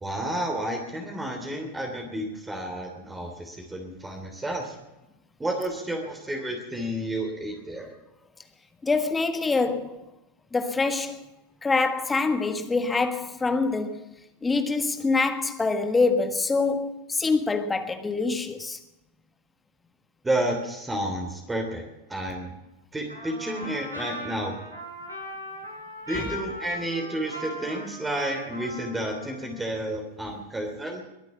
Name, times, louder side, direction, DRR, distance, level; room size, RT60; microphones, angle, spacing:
voice 1, 0.0-4.8 5.4-7.9 20.2-21.8 22.1-22.5 22.9-24.7 26.1-31.0, right 1 dB, 10° right, 3.1 m, -31 dB
voice 2, 8.8-10.0 10.5-11.2 11.6-14.1 14.4-18.8 26.1-26.4, left 3 dB, 10° left, 1.5 m, -25 dB
Trumpet, 23.1-29.7, left 1 dB, 85° right, 5.1 m, -39 dB
22.5 x 8.3 x 7.2 m
figure-of-eight pair, 90°, 0 cm